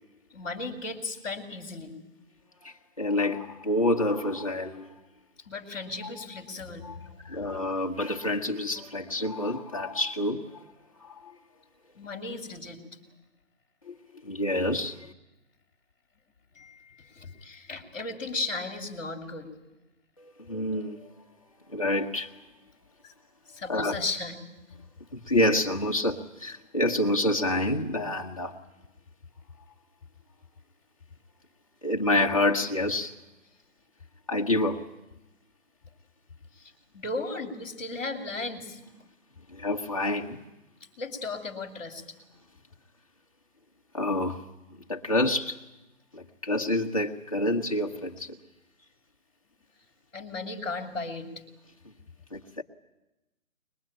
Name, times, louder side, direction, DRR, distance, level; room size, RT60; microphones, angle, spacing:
voice 1, 0.3-1.9 5.4-6.9 11.9-12.8 16.5-19.5 23.0-23.1 23.5-24.5 36.5-38.8 41.0-42.0 50.1-51.3, left 3 dB, 5° left, -10 dB, 1.5 m, -36 dB
voice 2, 2.6-4.9 6.0-6.1 6.8-6.9 7.2-10.6 11.0-11.4 13.8-14.0 14.2-15.1 20.2-21.1 21.7-22.3 23.7-23.9 25.1-28.6 31.8-33.1 34.3-34.9 39.5-40.4 43.9-44.4 44.9-45.6 46.1-48.4 52.3-52.6, left 1 dB, 25° left, 0 dB, 0.9 m, -28 dB
23.0 x 21.5 x 8.7 m, 0.98 s
hypercardioid pair, 175°, 41 cm